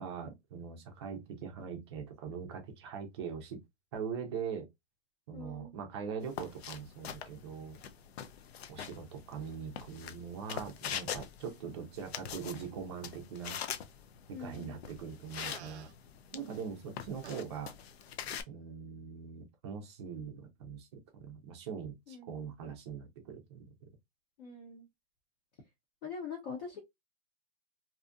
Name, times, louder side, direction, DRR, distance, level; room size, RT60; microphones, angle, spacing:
voice 1, 0.0-3.6 3.9-4.7 5.3-7.8 8.7-13.6 14.3-15.9 16.3-17.7 18.5-23.7, right 6 dB, 25° right, 0.5 m, -42 dB
voice 2, 5.3-5.7 14.3-14.7 22.1-22.5 24.4-24.9 26.0-26.8, left 5 dB, 45° left, 0.9 m, -43 dB
sound 1, 6.2-18.4, left 8 dB, 70° left, 0.5 m, -44 dB
Fart, 15.4-15.9 17.2-17.4, right 10 dB, 85° right, 0.5 m, -48 dB
2.6 x 2.3 x 2.4 m
hypercardioid pair, 155°, 33 cm